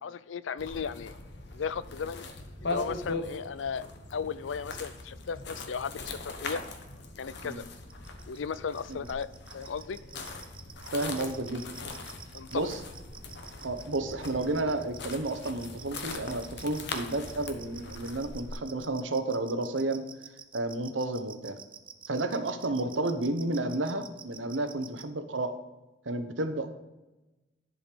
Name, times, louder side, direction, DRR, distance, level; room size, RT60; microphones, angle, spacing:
voice 1, 0.0-1.1 1.5-2.2 2.6-3.8 4.1-6.6 7.2-7.6 8.3-9.3 9.5-10.0 12.3-12.7, left 6 dB, 90° left, 17 dB, 0.4 m, -35 dB
sound 1, 0.6-18.5, left 3 dB, 65° left, 1.1 m, -41 dB
sound 2, 7.9-25.0, right 8 dB, 30° right, 0.6 m, -48 dB
voice 2, 10.9-11.9 12.5-12.8 13.6-20.1 20.5-21.6 22.1-25.6 26.0-26.7, right 2 dB, 90° right, 9 dB, 0.9 m, -31 dB
11.0 x 5.1 x 5.1 m, 1.1 s
head